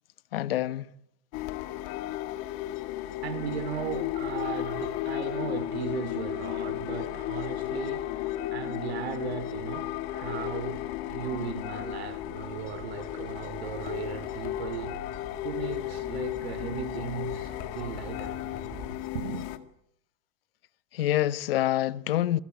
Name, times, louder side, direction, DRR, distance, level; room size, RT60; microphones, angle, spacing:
voice 1, 0.3-0.9 20.9-22.4, left 13 dB, 65° left, 1.3 m, -26 dB
sound 1, 1.3-19.6, left 14 dB, 35° left, 1.9 m, -34 dB
voice 2, 3.2-18.4 19.1-19.5, right 9 dB, 80° right, 2.9 m, -37 dB
sound 2, 11.0-18.9, left 1 dB, ahead, 4.8 m, -47 dB
28.5 x 21.0 x 9.7 m
supercardioid pair, 175°, 31 cm